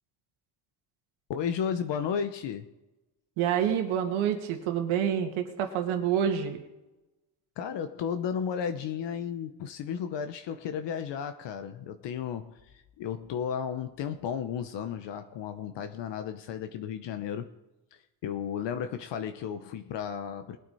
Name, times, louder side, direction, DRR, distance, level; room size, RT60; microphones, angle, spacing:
voice 1, 1.3-2.7 7.6-17.5 18.2-20.6, left 7 dB, 60° left, 8 dB, 1.0 m, -33 dB
voice 2, 3.4-6.6, right 9 dB, 85° right, 5 dB, 2.1 m, -27 dB
21.5 x 8.8 x 4.2 m, 1.0 s
cardioid pair, 110°, 47 cm